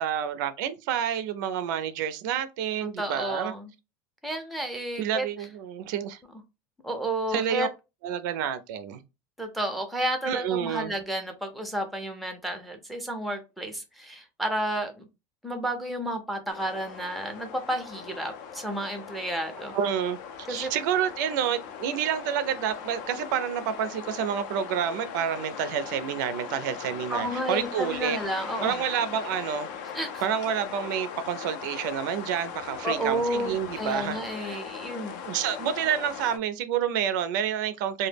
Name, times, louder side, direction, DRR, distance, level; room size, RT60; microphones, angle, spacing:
voice 1, 0.0-3.5 5.0-6.2 7.3-7.7 8.0-9.0 10.3-10.9 19.7-28.2 28.6-29.7 30.2-34.6 35.2-38.1, right 8 dB, 75° right, 0.4 m, -29 dB
voice 2, 3.0-3.7 4.2-5.3 6.8-7.7 9.4-15.1 15.4-19.7 20.5-20.7 27.1-28.8 29.9-30.2 32.8-35.2, right 1 dB, ahead, 0.4 m, -31 dB
sound 1, 16.5-36.4, left 7 dB, 65° left, 0.4 m, -39 dB
2.1 x 2.0 x 3.2 m
supercardioid pair, 155°, 10 cm